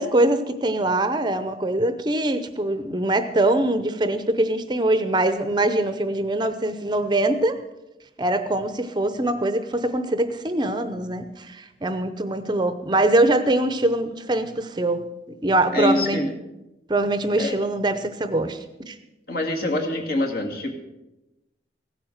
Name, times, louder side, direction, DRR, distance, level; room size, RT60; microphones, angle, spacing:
voice 1, 0.0-7.6 8.2-15.1 15.4-16.2 16.9-18.6 18.9-19.0, right 1 dB, 25° right, 10 dB, 0.7 m, -23 dB
voice 2, 15.7-16.3 17.4-17.6 19.3-20.8, left 1 dB, 55° left, 2 dB, 2.2 m, -25 dB
16.0 x 8.8 x 6.5 m, 0.99 s
head